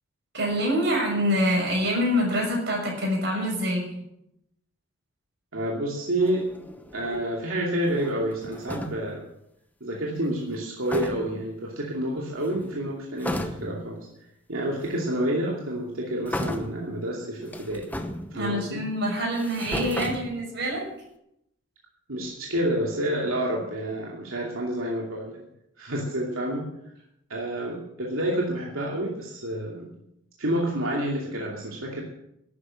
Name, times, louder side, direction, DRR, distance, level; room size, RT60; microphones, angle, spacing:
voice 1, 0.3-4.0 18.3-20.9, equal, 55° right, -1 dB, 6.4 m, -25 dB
voice 2, 5.5-6.5 6.9-9.2 9.8-14.0 14.5-17.9 18.3-18.8 22.1-25.4 25.8-26.7 27.3-29.9 30.4-32.0, right 1 dB, 85° right, -2 dB, 2.6 m, -29 dB
sound 1, 6.2-7.4 7.8-9.2 10.5-10.6 10.9-11.6 12.3-12.8 13.2-13.9 14.9-15.0 16.3-17.0 17.4-18.7 19.2-20.8, left 1 dB, 10° left, 0.9 m, -35 dB
12.0 x 9.9 x 7.7 m, 0.80 s
head